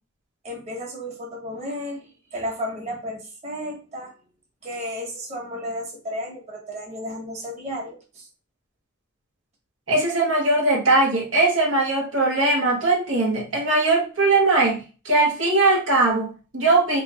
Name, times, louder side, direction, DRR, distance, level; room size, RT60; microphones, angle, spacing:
voice 1, 0.4-4.1 4.6-8.3, equal, 35° right, -1 dB, 1.3 m, -33 dB
voice 2, 9.9-17.0, right 2 dB, 90° right, -2 dB, 1.2 m, -20 dB
3.3 x 2.3 x 4.2 m, 0.35 s
head